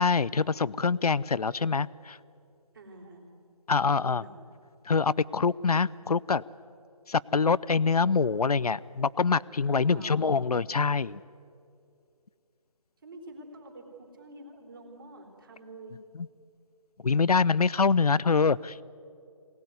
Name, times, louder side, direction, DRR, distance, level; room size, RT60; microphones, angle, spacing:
voice 1, 0.0-2.2 3.7-4.2 4.9-6.4 7.1-11.2 17.0-18.8, left 5 dB, 80° left, 19 dB, 0.6 m, -25 dB
voice 2, 2.7-3.2 4.0-4.4 9.7-10.3 13.0-16.0, right 1 dB, 35° right, 2 dB, 3.7 m, -46 dB
23.0 x 18.0 x 9.5 m, 2.5 s
figure-of-eight pair, 160°, 19 cm